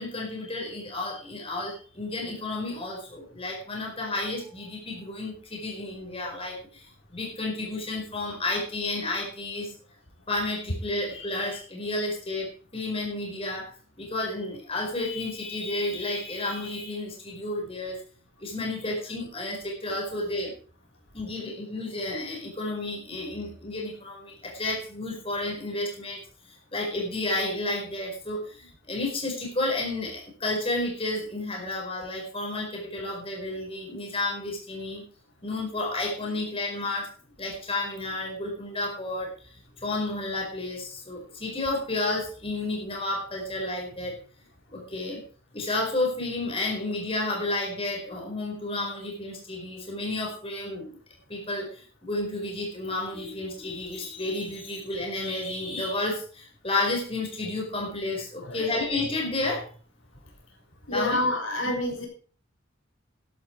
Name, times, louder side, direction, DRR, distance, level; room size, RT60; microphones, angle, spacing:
voice 1, 0.0-9.7 10.3-13.7 14.0-18.0 18.4-20.5 21.1-35.0 35.4-37.1 37.4-44.1 44.7-45.2 45.5-51.0 51.3-59.7 60.9-61.2 61.6-61.7, left 2 dB, 30° left, -1 dB, 4.8 m, -31 dB
voice 2, 58.4-58.7 60.9-62.1, left 1 dB, 85° left, 0 dB, 5.0 m, -28 dB
12.5 x 11.5 x 4.7 m, 0.42 s
head